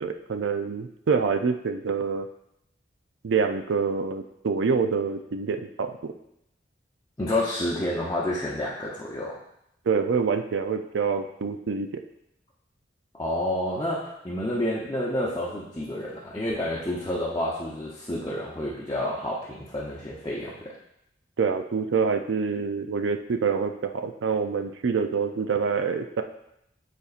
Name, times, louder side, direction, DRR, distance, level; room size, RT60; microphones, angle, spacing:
voice 1, 0.0-2.3 3.2-6.1 9.9-12.0 21.4-26.2, right 5 dB, 80° right, 7 dB, 0.4 m, -26 dB
voice 2, 7.2-9.3 13.1-20.6, left 1 dB, 20° left, -7 dB, 0.7 m, -29 dB
9.5 x 4.2 x 2.5 m, 0.78 s
head